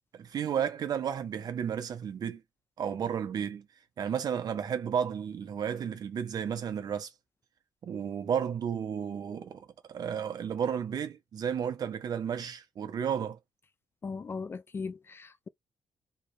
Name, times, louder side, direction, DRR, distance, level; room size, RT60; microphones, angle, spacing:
voice 1, 0.1-2.4 2.8-3.7 4.0-7.1 7.8-13.4, right 8 dB, 60° right, 1.1 m, -32 dB
voice 2, 14.0-15.5, left 4 dB, 30° left, 0.4 m, -38 dB
3.3 x 3.2 x 4.7 m
cardioid pair, 135°, 8 cm